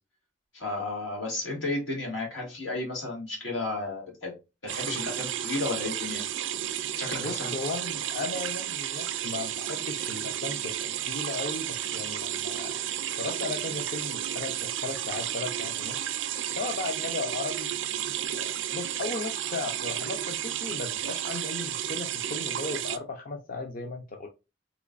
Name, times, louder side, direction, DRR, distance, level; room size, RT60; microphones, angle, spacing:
voice 1, 0.5-4.3 4.6-6.2 7.0-7.5, left 2 dB, 85° left, 1.6 m, -33 dB
sound 1, 4.7-23.0, right 11 dB, 75° right, 0.4 m, -32 dB
voice 2, 7.2-12.8 13.2-16.1 16.5-17.7 18.3-24.3, left 3 dB, 50° left, 0.5 m, -36 dB
3.8 x 3.0 x 2.4 m
head